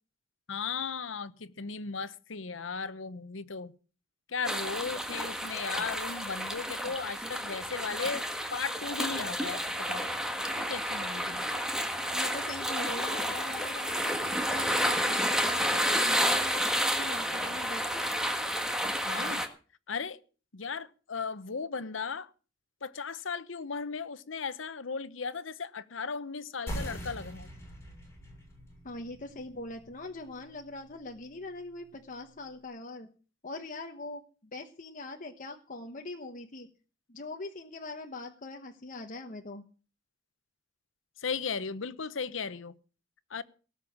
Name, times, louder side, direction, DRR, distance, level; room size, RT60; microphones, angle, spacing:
voice 1, 0.5-3.7 4.3-8.2 8.5-10.0 10.6-11.5 19.0-19.4 19.9-20.2 20.5-22.3 22.8-27.5 41.2-42.7 43.3-43.4, left 5 dB, 90° left, 0.9 m, -36 dB
sound 1, 4.4-19.5, equal, 5° right, 1.6 m, -31 dB
voice 2, 12.1-18.1 28.8-33.1 33.4-36.7 37.1-39.6, left 2 dB, 45° left, 1.1 m, -42 dB
sound 2, 26.7-31.8, equal, 15° left, 7.2 m, -43 dB
18.5 x 6.9 x 7.3 m
head